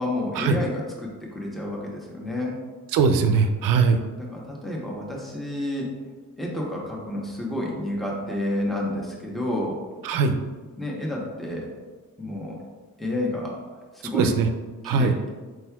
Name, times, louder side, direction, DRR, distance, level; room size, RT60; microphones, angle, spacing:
voice 1, 0.0-2.6 4.2-5.9 6.4-9.8 10.8-11.7 12.2-12.6 13.0-13.6 13.9-14.3 14.8-15.1, left 1 dB, ahead, -3 dB, 0.9 m, -30 dB
voice 2, 2.9-4.0 10.0-10.4 14.1-14.5 14.8-15.1, right 5 dB, 80° right, 7 dB, 0.5 m, -20 dB
4.6 x 4.2 x 2.3 m, 1.4 s
cardioid pair, 70°, 33 cm